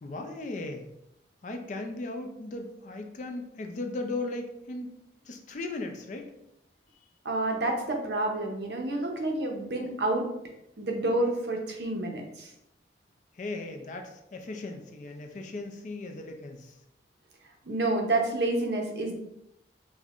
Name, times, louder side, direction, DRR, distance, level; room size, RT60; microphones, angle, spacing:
voice 1, 0.0-0.9 1.4-4.9 5.2-6.3 13.3-16.8, left 2 dB, 40° left, 4 dB, 0.4 m, -37 dB
voice 2, 7.2-10.3 10.8-12.5 17.6-19.1, right 2 dB, 65° right, 2 dB, 0.6 m, -29 dB
5.1 x 2.1 x 2.4 m, 0.83 s
head